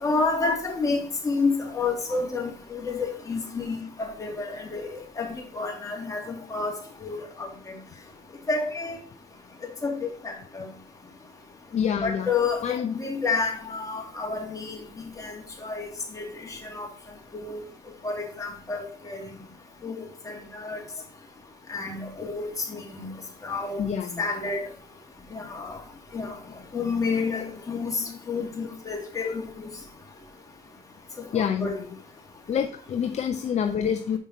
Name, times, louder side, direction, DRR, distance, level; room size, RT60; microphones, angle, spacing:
voice 1, 0.0-4.9 5.2-6.7 7.0-7.5 8.5-9.0 9.8-10.6 12.0-12.6 12.9-14.8 15.2-15.3 15.6-15.8 16.1-16.3 16.7-16.9 17.3-17.6 18.0-19.2 19.8-19.9 20.3-20.8 21.7-23.1 23.4-23.8 24.2-24.6 25.3-25.8 26.1-26.3 26.7-28.0 28.3-29.7 31.3-31.7, left 4 dB, 20° left, 0 dB, 2.4 m, -29 dB
voice 2, 11.7-12.3 12.6-13.0 21.0-21.1 23.8-24.2 25.7-25.9 26.5-26.6 27.1-27.6 28.0-28.2 28.6-28.7 31.3-31.9 32.5-34.2, left 8 dB, 40° left, 7 dB, 0.6 m, -28 dB
7.4 x 5.5 x 4.2 m, 0.44 s
cardioid pair, 110°, 17 cm